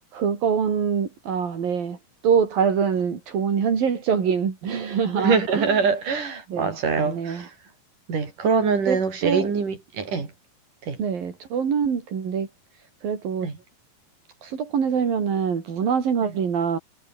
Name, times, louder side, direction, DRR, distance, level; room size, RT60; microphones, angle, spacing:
voice 1, 0.1-2.0 2.2-5.8 6.5-7.5 8.9-9.5 11.0-12.5 13.0-13.5 14.4-16.8, right 7 dB, 80° right, 5.5 m, -24 dB
voice 2, 5.2-7.5 8.1-10.3 10.8-11.0 13.4-13.5, right 5 dB, 65° right, 6.8 m, -24 dB
omnidirectional pair, 4.0 m